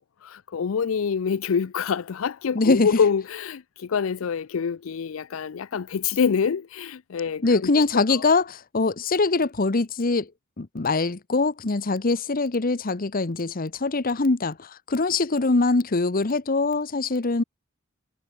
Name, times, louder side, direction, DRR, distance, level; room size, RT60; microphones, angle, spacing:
voice 1, 0.0-7.7 8.1-8.3, left 6 dB, 85° left, 0.5 m, -26 dB
voice 2, 2.5-2.9 7.4-10.3 10.6-17.4, left 3 dB, 45° left, 0.9 m, -23 dB
head